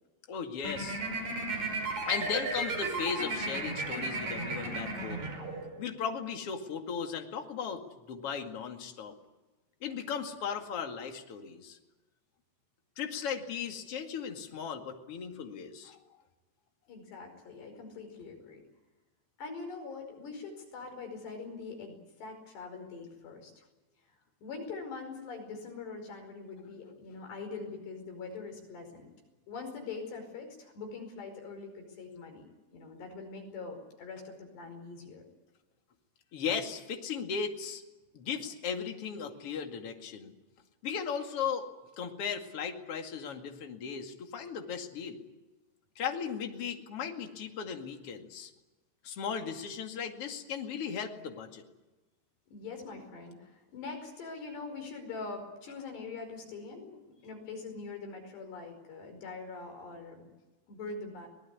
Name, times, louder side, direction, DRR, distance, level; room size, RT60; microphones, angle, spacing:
voice 1, 0.3-1.0 2.1-5.3 5.8-9.1 9.8-11.8 13.0-16.0 36.3-37.8 38.1-40.3 40.8-41.7 42.0-45.2 46.0-48.5 49.0-51.6, left 6 dB, 40° left, 4 dB, 2.7 m, -36 dB
sound 1, 0.6-5.9, right 2 dB, 45° right, 6.2 m, -34 dB
voice 2, 16.9-18.6 19.4-23.5 24.4-29.1 29.5-35.2 52.5-57.0 57.2-60.3 60.7-61.3, left 4 dB, 80° left, 4 dB, 7.2 m, -43 dB
24.0 x 19.0 x 9.6 m, 1.1 s
omnidirectional pair, 4.7 m